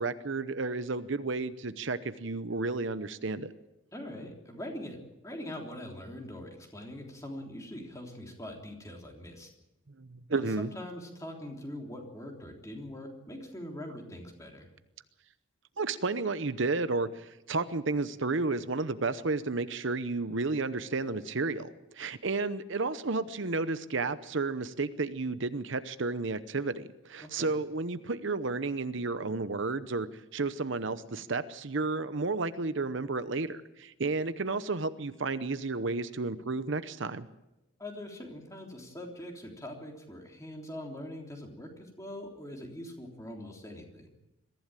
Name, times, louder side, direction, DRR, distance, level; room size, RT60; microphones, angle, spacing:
voice 1, 0.0-3.5 10.0-10.7 15.8-37.3, right 3 dB, 60° right, 12 dB, 0.8 m, -32 dB
voice 2, 3.9-9.5 10.3-14.7 27.2-27.5 37.8-44.1, left 1 dB, 15° left, 1 dB, 3.5 m, -43 dB
22.5 x 15.0 x 9.1 m, 0.96 s
head